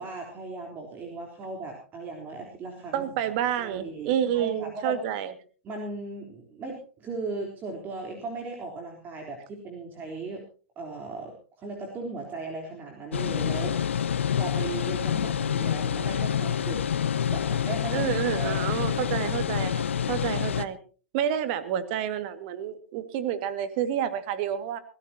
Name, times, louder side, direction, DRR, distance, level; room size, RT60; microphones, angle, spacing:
voice 1, 0.0-3.0 3.6-5.0 5.6-10.4 10.8-14.1 14.3-16.8 17.3-19.2, right 3 dB, 30° right, 1 dB, 3.8 m, -37 dB
voice 2, 2.9-5.3 17.9-20.8 21.1-24.8, right 10 dB, 50° right, 10 dB, 2.1 m, -29 dB
sound 1, 13.1-20.6, left 8 dB, 80° left, 0.9 m, -27 dB
23.0 x 16.5 x 2.9 m, 0.38 s
hypercardioid pair, 115°, 7 cm